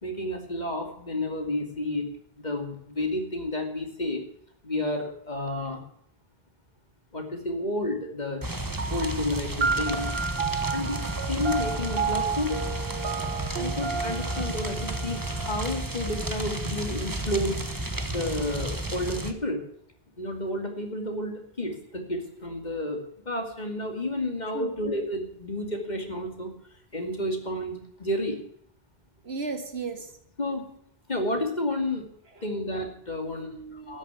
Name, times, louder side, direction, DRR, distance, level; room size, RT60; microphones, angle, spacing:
voice 1, 0.0-2.1 2.4-4.2 4.6-5.8 7.1-8.4 8.9-10.1 10.7-12.6 13.5-17.6 18.1-19.6 20.2-26.5 26.9-28.4 30.4-30.7 31.1-32.1 32.4-33.5 33.9-34.0, left 1 dB, 45° left, 4 dB, 2.8 m, -31 dB
sound 1, 8.4-19.3, right 1 dB, 20° right, 1.4 m, -32 dB
sound 2, 8.8-17.6, right 5 dB, 65° right, 1.4 m, -33 dB
voice 2, 29.2-30.1 32.3-32.5 33.2-34.0, right 4 dB, 85° right, 7 dB, 2.3 m, -36 dB
13.0 x 10.0 x 8.5 m, 0.68 s
omnidirectional pair, 1.0 m